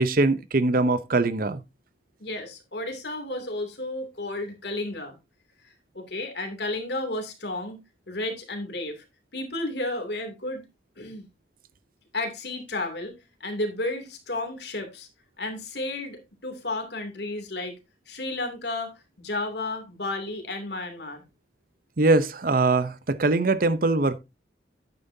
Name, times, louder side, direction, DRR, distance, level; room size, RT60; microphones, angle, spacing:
voice 1, 0.0-1.6 22.0-24.2, right 2 dB, 50° right, 0.7 m, -22 dB
voice 2, 2.2-5.2 5.9-7.8 8.1-9.0 9.3-10.6 11.0-11.3 12.1-13.1 13.4-15.1 15.4-17.8 18.1-21.2, left 2 dB, 65° left, 2.7 m, -32 dB
10.5 x 9.0 x 2.7 m
head